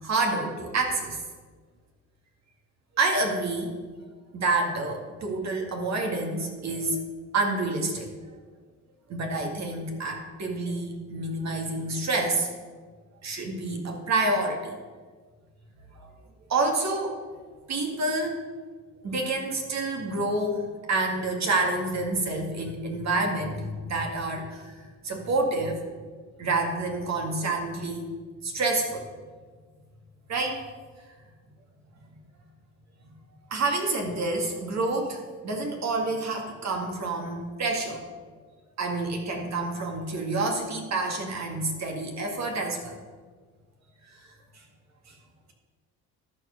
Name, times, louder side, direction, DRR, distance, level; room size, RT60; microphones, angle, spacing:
voice 1, 0.0-1.2 3.0-3.7 4.3-7.0 7.3-8.1 9.1-12.5 13.2-14.7 16.0-16.1 16.5-17.2 17.7-18.4 19.0-25.8 26.4-28.0 28.4-29.1 30.3-30.6 33.5-38.0 38.8-43.0 44.2-44.3 45.1-45.2, right 2 dB, 50° right, 2 dB, 2.1 m, -28 dB
12.0 x 4.7 x 6.6 m, 1.5 s
supercardioid pair, 80°, 35 cm